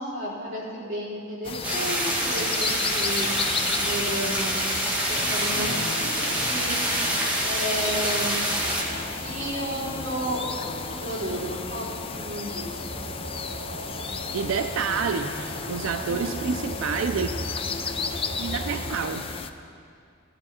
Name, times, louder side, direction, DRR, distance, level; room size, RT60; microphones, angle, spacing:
voice 1, 0.0-3.3 3.7-4.6 5.1-6.8 7.5-8.4 9.2-11.9 12.1-13.0 16.0-16.4, equal, 45° right, -7 dB, 4.1 m, -32 dB
sound 1, 1.4-19.5, left 5 dB, 30° left, 0.4 m, -34 dB
sound 2, 1.6-8.8, right 1 dB, 10° right, 1.9 m, -26 dB
sound 3, 2.8-18.9, right 1 dB, 60° right, 2.5 m, -39 dB
voice 2, 14.3-17.3 18.4-19.3, right 5 dB, 90° right, 7 dB, 0.4 m, -28 dB
16.0 x 12.0 x 4.3 m, 2.4 s
head